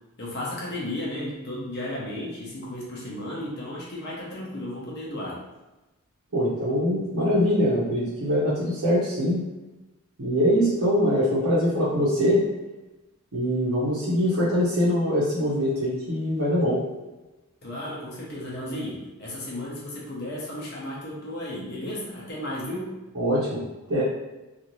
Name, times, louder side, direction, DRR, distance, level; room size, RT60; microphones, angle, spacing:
voice 1, 0.2-5.4 17.6-22.9, left 1 dB, 50° left, -5 dB, 0.7 m, -34 dB
voice 2, 6.3-9.4 10.2-12.4 13.3-16.8 23.1-23.6 23.9-24.0, equal, 90° right, -9 dB, 0.8 m, -23 dB
2.6 x 2.4 x 3.0 m, 1.1 s
head